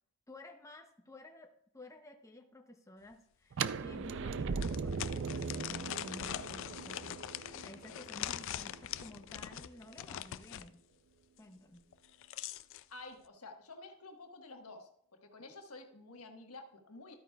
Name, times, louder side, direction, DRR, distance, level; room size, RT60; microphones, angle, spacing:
voice 1, 0.3-10.8 11.4-11.9, left 1 dB, 15° left, 3 dB, 0.7 m, -53 dB
sound 1, 3.1-3.2 3.7-3.8 4.6-10.7 11.9-12.8, left 11 dB, 60° left, 0.3 m, -42 dB
sound 2, 3.5-9.4, right 5 dB, 60° right, 0.4 m, -39 dB
voice 2, 12.9-14.9 15.2-17.1, left 2 dB, 85° left, 3 dB, 1.4 m, -50 dB
12.5 x 9.0 x 2.3 m, 0.72 s
head